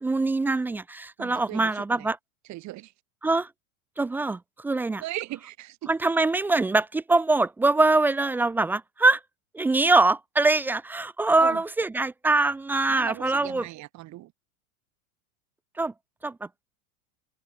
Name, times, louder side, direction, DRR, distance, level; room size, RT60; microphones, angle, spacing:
voice 1, 0.0-2.2 3.2-3.5 4.0-5.0 5.9-9.2 9.5-13.7 15.8-15.9 16.2-16.5, right 2 dB, 5° right, 0.3 m, -23 dB
voice 2, 1.2-2.1 2.5-2.9 5.0-5.9 11.4-11.6 12.9-14.3, right 16 dB, 40° right, 2.1 m, -38 dB
hypercardioid pair, 100°, 43 cm